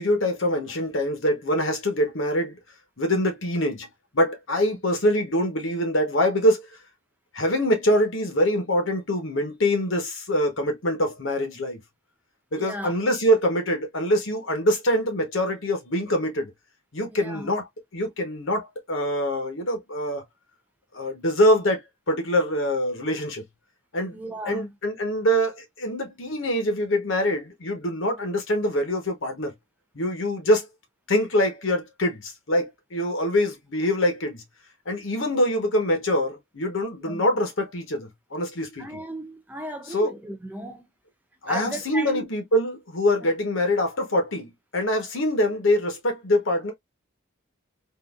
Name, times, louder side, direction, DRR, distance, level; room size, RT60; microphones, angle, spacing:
voice 1, 0.0-2.6 3.0-3.9 4.1-6.7 7.3-11.8 12.5-16.5 16.9-17.7 17.9-20.2 20.9-21.8 22.1-23.4 23.9-24.2 24.5-29.5 29.9-30.7 31.1-34.4 34.9-38.9 39.9-40.1 41.4-46.7, equal, 65° left, 1.1 m, -24 dB
voice 2, 12.6-13.0 17.1-17.5 24.1-24.7 37.1-37.2 38.8-40.8 41.5-42.2, right 1 dB, 10° right, 0.4 m, -35 dB
3.8 x 2.6 x 2.4 m
head